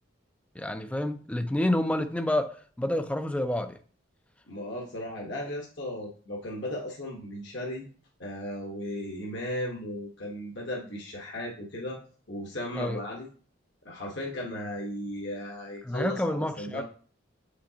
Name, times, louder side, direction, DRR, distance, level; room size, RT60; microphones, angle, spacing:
voice 1, 0.6-3.8 12.7-13.0 15.8-16.8, left 1 dB, 5° left, 0.4 m, -29 dB
voice 2, 4.5-7.9 8.2-12.0 12.3-13.3 13.8-16.8, left 1 dB, 60° left, 1.1 m, -36 dB
7.4 x 5.2 x 2.8 m
head